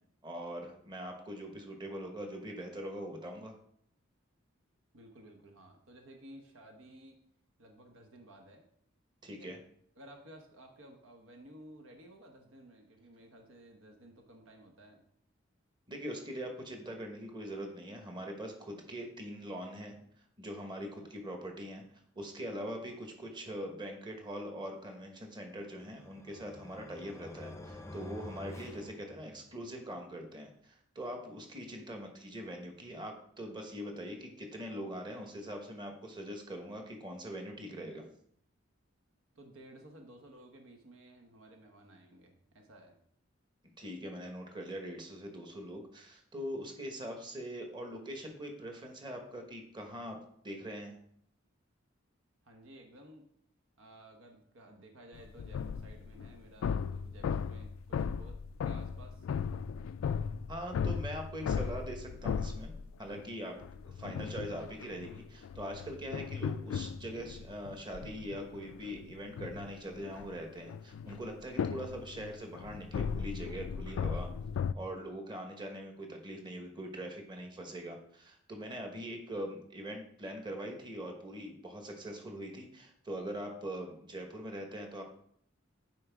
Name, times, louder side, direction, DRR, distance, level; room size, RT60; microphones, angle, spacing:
voice 1, 0.2-3.5 9.2-9.6 15.9-19.9 20.4-21.8 22.1-38.0 43.8-50.2 50.4-50.9 60.5-62.7 63.0-63.5 63.8-74.3 74.7-85.0, equal, 25° right, 3 dB, 1.2 m, -42 dB
voice 2, 4.9-7.2 7.6-8.6 9.3-9.6 10.0-15.0 39.3-43.0 52.4-53.3 53.8-59.3 64.0-64.1, right 1 dB, 80° right, 3 dB, 1.0 m, -55 dB
sound 1, 25.4-29.7, left 1 dB, 15° left, 0.6 m, -49 dB
sound 2, 55.1-63.3 63.6-74.7, left 6 dB, 75° left, 0.3 m, -37 dB
9.6 x 4.6 x 3.5 m, 0.65 s
head